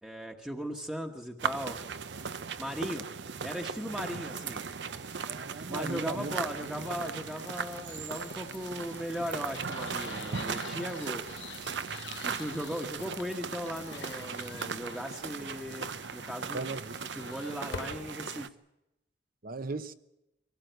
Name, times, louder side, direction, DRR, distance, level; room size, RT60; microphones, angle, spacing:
voice 1, 0.0-1.8 2.6-3.1 3.4-4.6 5.7-11.2 12.2-16.7 17.1-18.5, equal, 5° right, 1.2 m, -38 dB
sound 1, 1.4-18.5, right 5 dB, 80° right, 0.7 m, -38 dB
Caçadors de sons - Desgracia, 4.5-18.1, left 6 dB, 85° left, 0.8 m, -49 dB
voice 2, 5.3-6.3 16.5-17.0 19.4-19.9, right 3 dB, 55° right, 0.9 m, -37 dB
24.0 x 17.5 x 8.0 m
head